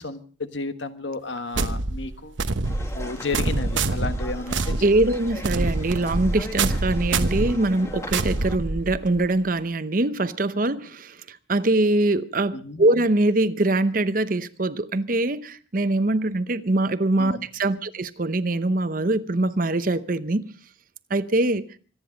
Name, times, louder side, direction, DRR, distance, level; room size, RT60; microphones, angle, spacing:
voice 1, 0.0-2.4 2.9-4.8 12.5-12.8 17.2-17.5, left 3 dB, 75° left, 1.4 m, -32 dB
sound 1, 1.5-9.2, right 3 dB, 80° right, 1.1 m, -26 dB
sound 2, 2.6-8.6, left 1 dB, 15° left, 1.5 m, -40 dB
voice 2, 4.8-20.4 21.1-21.6, right 2 dB, 45° right, 0.8 m, -23 dB
25.5 x 9.9 x 5.2 m
head